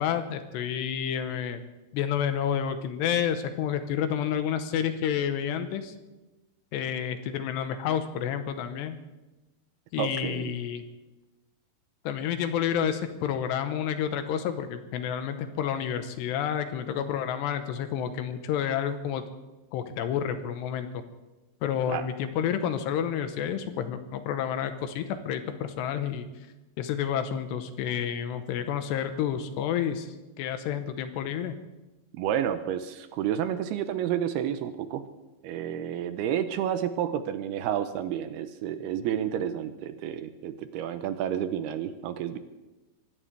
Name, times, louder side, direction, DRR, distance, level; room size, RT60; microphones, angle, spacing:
voice 1, 0.0-1.6 1.9-5.9 6.7-9.0 9.9-10.8 12.0-19.2 19.7-20.9 21.6-26.3 26.8-31.6, left 9 dB, 85° left, 9 dB, 3.1 m, -30 dB
voice 2, 10.0-10.5 21.9-22.1 32.1-35.0 35.4-42.4, right 10 dB, 80° right, 10 dB, 2.6 m, -30 dB
24.0 x 16.0 x 3.4 m, 1.1 s
omnidirectional pair, 5.0 m